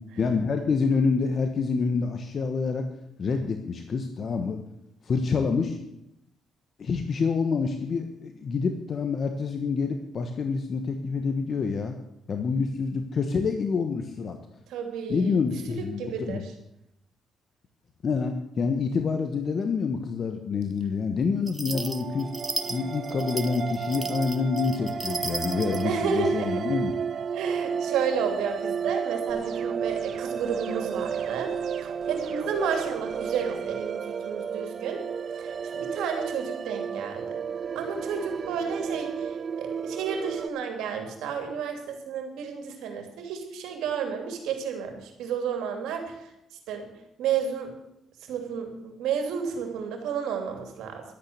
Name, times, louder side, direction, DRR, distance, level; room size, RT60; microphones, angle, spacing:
voice 1, 0.2-2.9 3.2-4.6 5.0-5.8 6.8-12.0 12.3-14.4 15.1-16.4 18.0-22.3 22.7-26.9, left 5 dB, 50° left, 6 dB, 1.3 m, -27 dB
voice 2, 14.7-15.4 15.8-16.5 25.8-26.6 27.3-31.5 31.8-35.0 35.4-37.4 37.7-46.3 46.7-46.9 47.2-47.7 48.3-51.0, right 6 dB, 90° right, 4 dB, 2.9 m, -31 dB
sound 1, 21.5-25.9, right 2 dB, 20° right, 1.2 m, -35 dB
sound 2, 21.7-40.5, right 7 dB, 50° right, 0.6 m, -32 dB
sound 3, 29.3-33.7, right 7 dB, 70° right, 1.6 m, -44 dB
12.5 x 8.6 x 8.1 m, 0.82 s
cardioid pair, 90°, 0 cm